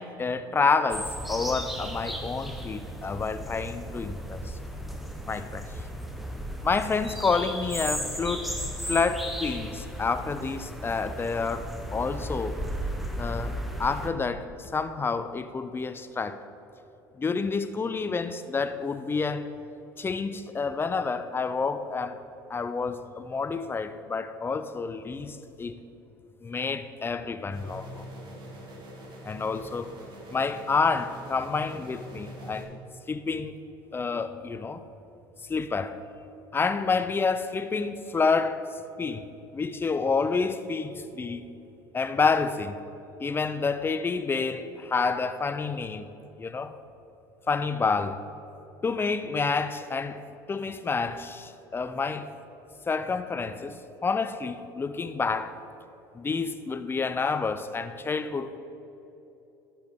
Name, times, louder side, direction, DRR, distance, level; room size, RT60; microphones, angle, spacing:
voice 1, 0.0-4.6 5.3-5.7 6.6-8.5 8.8-12.6 13.2-16.4 17.2-19.5 20.0-22.2 22.5-25.7 26.4-28.0 29.2-29.9 30.3-32.8 33.1-33.5 33.9-34.8 35.5-36.0 36.5-38.6 39.0-39.3 39.5-41.4 41.9-42.8 43.2-46.1 46.4-46.8 47.5-48.2 48.8-50.2 50.5-52.3 52.9-55.6 56.1-58.6, left 4 dB, 20° left, 11 dB, 0.5 m, -29 dB
sound 1, 0.9-14.1, equal, ahead, 0.9 m, -35 dB
sound 2, 27.5-32.6, right 1 dB, 45° right, 1.6 m, -44 dB
11.5 x 6.0 x 3.6 m, 3.0 s
hypercardioid pair, 75°, 11 cm